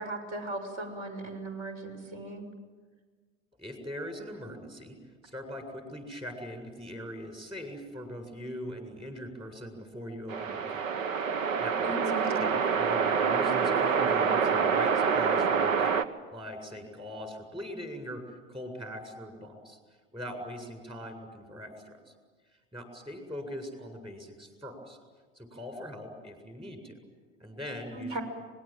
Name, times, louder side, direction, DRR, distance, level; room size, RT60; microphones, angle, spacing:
voice 1, 0.0-2.4 11.8-12.4 27.9-28.2, right 2 dB, 45° right, 6 dB, 6.6 m, -37 dB
voice 2, 3.6-5.0 5.2-10.8 11.3-16.0 16.3-19.8 20.1-22.1 22.7-25.0 25.3-27.0 27.4-28.2, equal, 15° right, 5 dB, 7.6 m, -41 dB
sound 1, 10.3-16.0, right 6 dB, 80° right, 1.3 m, -26 dB
25.0 x 21.0 x 9.1 m, 1.4 s
hypercardioid pair, 90°, 39 cm